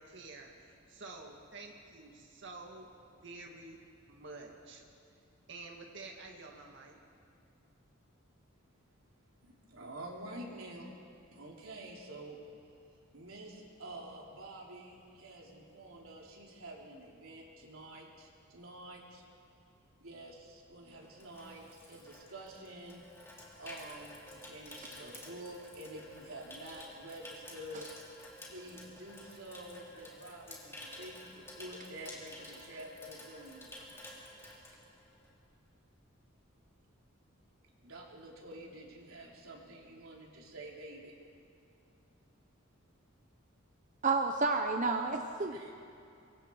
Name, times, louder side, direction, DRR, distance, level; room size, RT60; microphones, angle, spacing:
voice 1, 0.0-2.9 3.2-3.8 4.1-4.8 5.5-7.0, right 3 dB, 60° right, 1 dB, 2.0 m, -49 dB
voice 2, 9.4-10.9 11.3-12.4 13.1-19.2 20.0-23.0 23.6-28.0 28.5-33.8 37.8-41.2 45.5-45.7, right 1 dB, 85° right, -1 dB, 3.5 m, -48 dB
Water tap faucet / Sink (filling or washing), 20.5-35.4 35.7-36.0, left 1 dB, 10° left, 3.2 m, -51 dB
voice 3, 44.0-45.7, right 3 dB, 35° right, 4 dB, 0.8 m, -30 dB
25.0 x 22.5 x 4.7 m, 2.6 s
head